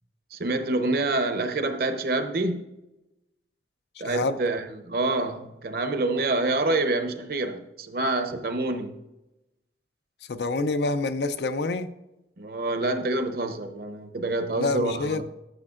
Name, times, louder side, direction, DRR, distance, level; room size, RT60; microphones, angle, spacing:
voice 1, 0.3-2.7 4.0-9.0 12.4-15.2, right 2 dB, 55° right, 0.7 m, -27 dB
voice 2, 4.0-4.4 10.3-11.9 14.6-15.2, left 3 dB, 70° left, 0.5 m, -27 dB
11.5 x 6.5 x 2.4 m
head